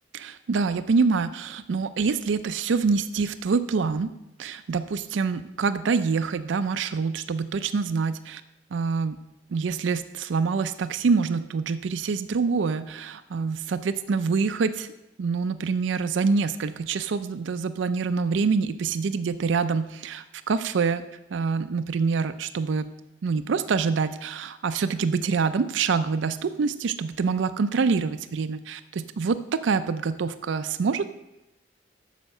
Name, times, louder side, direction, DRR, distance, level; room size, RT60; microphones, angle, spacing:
voice 1, 0.1-4.1 4.4-8.4 8.7-9.2 9.5-14.9 15.2-21.0 21.3-22.8 23.2-31.1, right 5 dB, 75° right, 12 dB, 0.4 m, -26 dB
9.2 x 6.3 x 6.5 m, 0.92 s
head